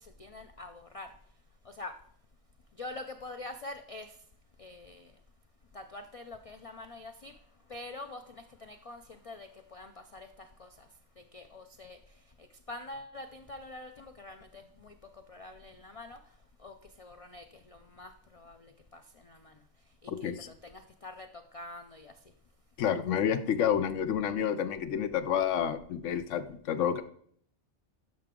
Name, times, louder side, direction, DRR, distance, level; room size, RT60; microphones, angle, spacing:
voice 1, 0.2-1.1 1.7-2.0 2.8-4.1 4.6-5.1 5.7-7.3 7.7-10.7 11.3-12.0 12.7-14.9 15.3-16.2 16.6-19.5 20.2-22.1, left 2 dB, 50° left, 6 dB, 0.4 m, -45 dB
voice 2, 22.8-27.0, left 8 dB, 85° left, 11 dB, 1.0 m, -29 dB
12.5 x 5.8 x 3.7 m, 0.62 s
omnidirectional pair, 1.2 m